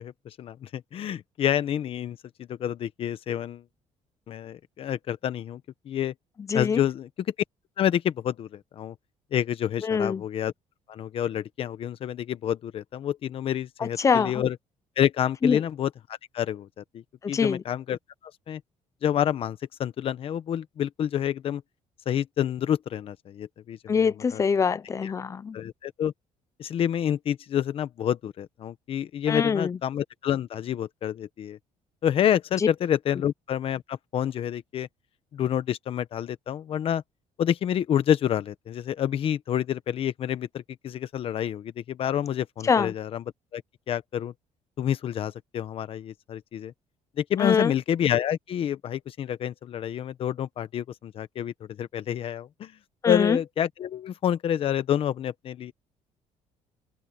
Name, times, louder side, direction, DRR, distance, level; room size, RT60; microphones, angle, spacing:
voice 1, 0.0-3.6 4.3-6.1 6.5-7.1 7.8-8.9 9.3-10.5 10.9-14.6 15.0-15.9 16.3-18.0 18.5-18.6 19.0-21.6 22.1-24.4 25.0-25.1 25.5-26.1 26.6-31.6 32.0-34.9 35.3-37.0 37.4-43.2 43.5-43.6 43.9-44.3 44.8-46.7 47.2-52.7 53.1-55.7, left 10 dB, 50° left, 1.1 m, -28 dB
voice 2, 6.5-6.8 9.8-10.2 13.8-14.4 15.4-15.6 17.2-17.6 23.9-25.6 29.3-29.8 42.6-42.9 47.4-47.7 53.0-53.4, left 6 dB, 25° left, 0.6 m, -24 dB
cardioid pair, 150°, 13 cm